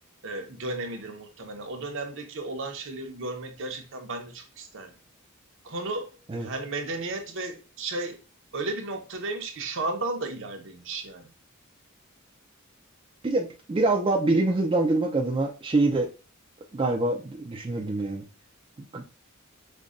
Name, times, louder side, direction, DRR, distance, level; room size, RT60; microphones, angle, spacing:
voice 1, 0.2-4.9 5.6-8.2 8.5-11.3, right 2 dB, 60° right, 0.7 m, -34 dB
voice 2, 13.2-16.1 16.7-18.2 18.9-19.0, right 2 dB, 25° right, 0.4 m, -25 dB
5.1 x 2.2 x 2.4 m
head